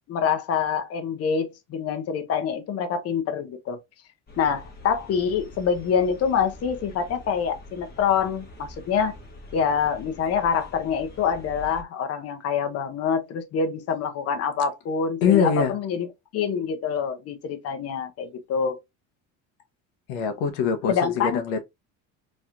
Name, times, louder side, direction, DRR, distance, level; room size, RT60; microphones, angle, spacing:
voice 1, 0.1-3.8 4.4-9.1 9.5-16.1 16.3-18.8 20.9-21.4, left 6 dB, 40° left, 0.7 m, -26 dB
sound 1, 4.3-11.8, left 1 dB, 25° left, 1.1 m, -45 dB
voice 2, 15.2-15.7 20.1-21.6, left 7 dB, 85° left, 0.8 m, -23 dB
3.1 x 2.9 x 2.4 m
cardioid pair, 120°, 37 cm